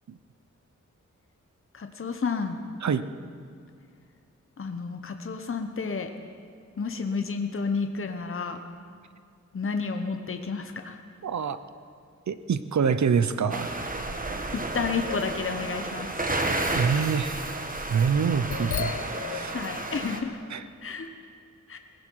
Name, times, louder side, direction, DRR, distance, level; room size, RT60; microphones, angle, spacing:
voice 1, 1.7-2.6 4.6-6.1 6.8-8.6 9.5-11.0 14.5-16.4 19.5-20.4 20.8-21.1 21.7-21.8, left 5 dB, 45° left, 6 dB, 1.0 m, -31 dB
voice 2, 11.2-11.6 12.3-13.7 16.7-17.4 17.9-18.9 19.3-19.6 20.5-20.6, right 6 dB, 70° right, 13 dB, 0.7 m, -25 dB
sound 1, 13.5-20.2, right 2 dB, 30° right, 1.3 m, -32 dB
sound 2, 14.9-16.1 16.4-16.5 18.0-20.1 20.5-20.6, left 8 dB, 90° left, 0.6 m, -35 dB
19.0 x 16.0 x 4.7 m, 2.2 s
wide cardioid pair, 95°, 30 cm